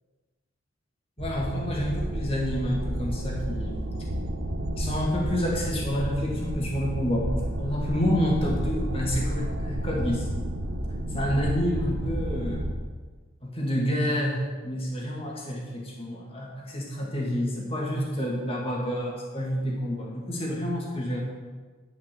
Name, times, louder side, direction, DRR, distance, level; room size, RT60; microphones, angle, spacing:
voice 1, 1.2-3.9 4.8-7.3 7.6-10.3 11.1-12.7 13.4-21.2, equal, 25° left, -3 dB, 2.4 m, -28 dB
sound 1, 1.2-12.7, right 1 dB, 85° right, 1.4 m, -31 dB
11.0 x 5.8 x 7.9 m, 1.4 s
head